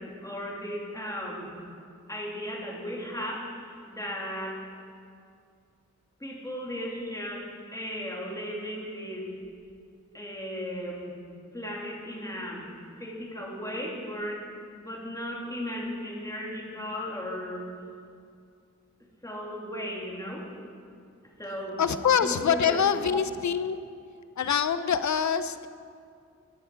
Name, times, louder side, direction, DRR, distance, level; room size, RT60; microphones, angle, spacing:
voice 1, 0.0-1.5 2.1-4.7 6.2-9.3 10.1-11.2 11.5-12.7 13.0-14.5 14.8-17.7 19.2-20.5 21.4-21.8 22.2-23.2, equal, 10° left, -3 dB, 2.7 m, -36 dB
voice 2, 21.8-23.8 24.4-25.7, left 7 dB, 75° left, 12 dB, 0.6 m, -25 dB
16.0 x 10.5 x 4.6 m, 2.4 s
wide cardioid pair, 100°, 29 cm